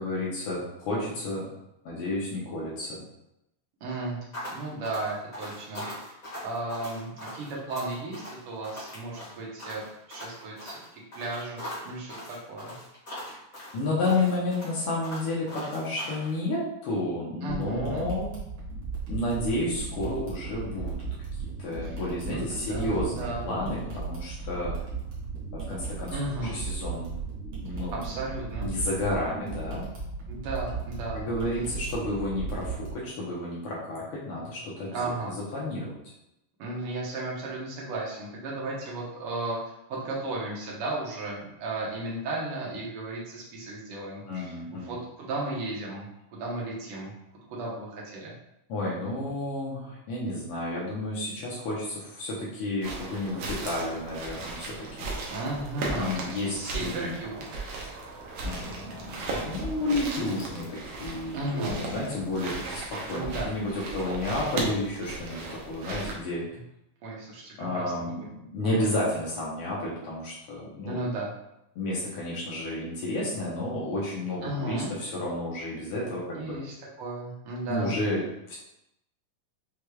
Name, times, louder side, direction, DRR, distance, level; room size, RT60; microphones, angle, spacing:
voice 1, 0.0-1.5 1.8-3.0 13.3-13.4 13.7-18.3 19.1-21.0 21.6-24.7 25.5-27.1 27.6-28.1 28.6-29.9 31.1-36.1 44.3-45.0 48.7-55.1 56.0-57.1 58.4-66.4 67.6-68.2 68.5-71.0 71.7-76.6 77.7-78.5, left 2 dB, 90° left, -6 dB, 1.2 m, -31 dB
voice 2, 3.8-4.2 4.5-6.2 6.4-9.8 10.1-10.8 11.1-12.8 17.4-18.1 21.8-21.9 22.2-23.5 26.1-26.6 28.0-28.7 30.3-31.3 34.9-35.4 36.6-39.6 39.9-46.1 46.3-47.1 47.5-48.3 55.3-57.6 61.3-61.9 63.1-63.5 67.0-68.2 68.6-68.9 70.9-71.3 74.4-74.9 76.3-78.0, right 2 dB, 70° right, -4 dB, 1.3 m, -34 dB
sound 1, 4.3-16.3, left 1 dB, 50° left, 0.5 m, -41 dB
sound 2, 17.5-32.9, right 4 dB, 55° right, 1.5 m, -36 dB
sound 3, 52.8-66.2, right 3 dB, 90° right, 1.3 m, -36 dB
6.2 x 3.1 x 2.3 m, 0.85 s
omnidirectional pair, 3.8 m